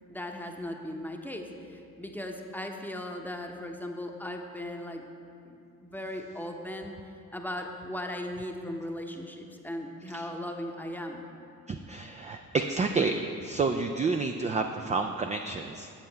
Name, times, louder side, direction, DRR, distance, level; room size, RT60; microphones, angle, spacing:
voice 1, 0.1-5.0 5.4-6.9 7.3-11.3, left 1 dB, 5° left, 2 dB, 0.8 m, -38 dB
voice 2, 11.7-15.9, right 4 dB, 20° right, 5 dB, 0.3 m, -29 dB
7.5 x 7.4 x 3.4 m, 2.5 s
supercardioid pair, 50°, 36 cm